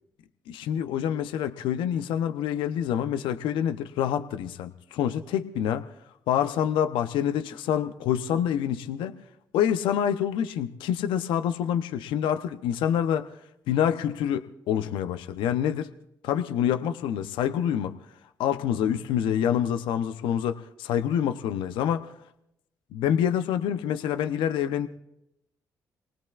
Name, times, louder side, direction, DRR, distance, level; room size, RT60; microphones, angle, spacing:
voice 1, 0.5-5.9 6.3-9.1 9.5-13.3 13.7-15.9 16.2-17.9 18.4-22.1 22.9-24.9, left 9 dB, 75° left, 9 dB, 0.7 m, -27 dB
27.0 x 19.0 x 2.4 m, 0.80 s
hypercardioid pair, 50°, 8 cm